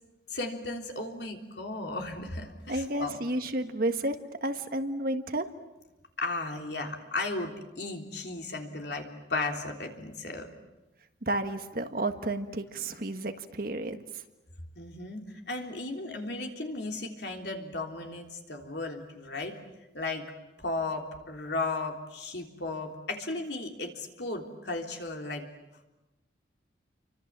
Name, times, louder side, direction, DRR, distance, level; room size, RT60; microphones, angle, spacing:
voice 1, 0.3-3.2 6.2-10.5 14.8-19.5 19.9-20.3 20.6-25.5, left 2 dB, 65° left, 2 dB, 3.5 m, -35 dB
voice 2, 2.7-4.1 4.4-5.5 11.2-14.0, right 1 dB, 50° right, 7 dB, 1.6 m, -31 dB
29.0 x 25.0 x 7.5 m, 1.0 s
head